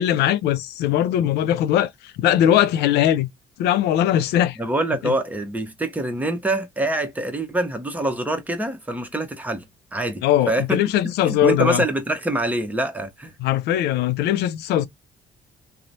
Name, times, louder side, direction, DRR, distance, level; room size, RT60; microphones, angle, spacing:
voice 1, 0.0-3.3 3.6-4.6 5.0-5.1 10.2-11.8 13.4-14.9, left 11 dB, 75° left, 0.4 m, -20 dB
voice 2, 4.6-9.6 9.9-10.2 10.5-10.8 11.2-13.3, right 1 dB, 10° right, 0.8 m, -25 dB
3.0 x 2.0 x 2.5 m
cardioid pair, 110°, 17 cm